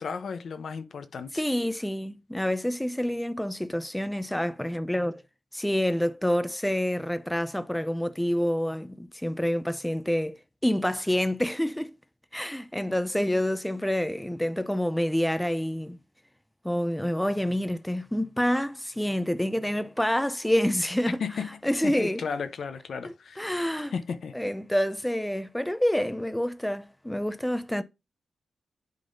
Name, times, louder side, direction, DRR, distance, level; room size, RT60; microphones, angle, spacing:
voice 1, 0.0-1.4 21.2-21.5 21.8-23.5 23.9-24.3, left 5 dB, 65° left, 0.7 m, -34 dB
voice 2, 1.3-5.2 5.5-12.0 12.3-16.0 16.6-21.2 21.6-22.2 23.0-23.9 24.3-27.8, equal, 5° left, 0.6 m, -27 dB
10.5 x 3.8 x 2.6 m
wide cardioid pair, 105°, 0 cm